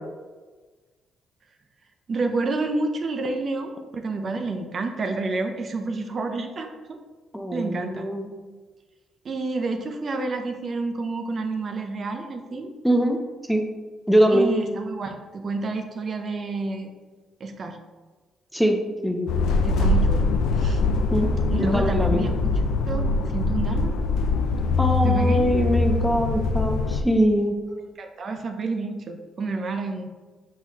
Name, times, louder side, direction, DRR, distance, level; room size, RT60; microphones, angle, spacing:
voice 1, 2.1-7.0 7.5-8.1 9.2-12.7 14.3-16.9 17.4-17.8 19.6-20.3 20.6-20.8 21.5-22.3 22.9-23.1 23.3-23.9 25.0-25.5 28.0-30.1, right 3 dB, 45° right, 6 dB, 0.5 m, -29 dB
voice 2, 7.3-8.3 12.8-13.2 13.5-13.6 14.1-14.5 18.5-19.3 21.1-21.3 21.6-22.2 24.8-27.6, right 1 dB, ahead, 4 dB, 0.5 m, -22 dB
sound 1, 19.3-27.0, left 3 dB, 85° left, 0.3 m, -23 dB
4.5 x 3.9 x 2.9 m, 1.3 s
cardioid pair, 90°, 0 cm